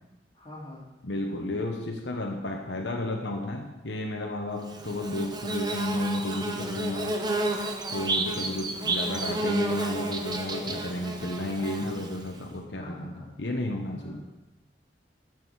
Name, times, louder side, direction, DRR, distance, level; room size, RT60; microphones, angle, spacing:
voice 1, 0.3-0.9 12.7-13.3 13.9-14.2, left 1 dB, 30° left, -4 dB, 2.6 m, -44 dB
voice 2, 1.0-7.2 7.9-14.2, left 1 dB, 80° left, 2 dB, 1.0 m, -32 dB
Bird / Buzz, 4.7-12.4, right 2 dB, 25° right, 0.9 m, -31 dB
12.5 x 6.2 x 4.7 m, 1.0 s
head